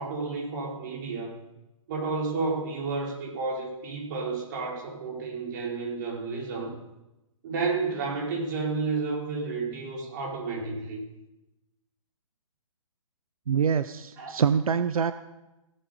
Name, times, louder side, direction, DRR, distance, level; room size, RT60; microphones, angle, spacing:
voice 1, 0.0-1.4 1.9-6.8 7.4-11.0 14.2-14.4, right 4 dB, 35° right, -2 dB, 3.9 m, -31 dB
voice 2, 13.5-15.1, right 7 dB, 85° right, 12 dB, 0.7 m, -25 dB
17.0 x 7.6 x 6.6 m, 0.99 s
hypercardioid pair, 165°, 18 cm